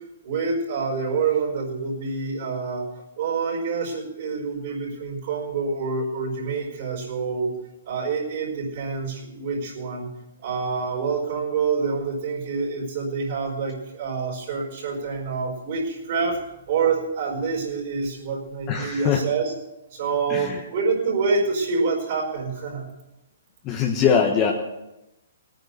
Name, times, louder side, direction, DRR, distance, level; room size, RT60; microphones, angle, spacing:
voice 1, 0.2-2.9 3.2-7.6 7.8-10.1 10.4-16.4 16.7-19.5 19.9-22.9, right 4 dB, 45° right, -4 dB, 4.9 m, -27 dB
voice 2, 18.7-19.2 20.3-20.6 23.6-24.5, left 7 dB, 25° left, 1 dB, 1.3 m, -21 dB
19.0 x 9.3 x 6.8 m, 0.95 s
hypercardioid pair, 160°, 0 cm